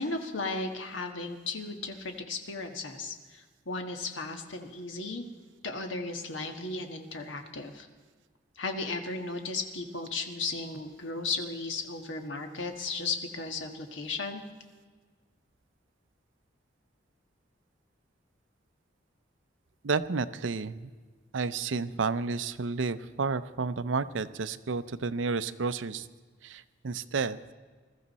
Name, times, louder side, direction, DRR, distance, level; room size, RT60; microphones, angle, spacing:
voice 1, 0.0-5.2 5.6-7.9 8.6-14.4, left 3 dB, 90° left, 5 dB, 1.5 m, -35 dB
voice 2, 19.8-20.9 21.3-26.1 26.4-27.4, right 4 dB, 85° right, 14 dB, 0.6 m, -31 dB
21.0 x 13.5 x 4.2 m, 1.4 s
head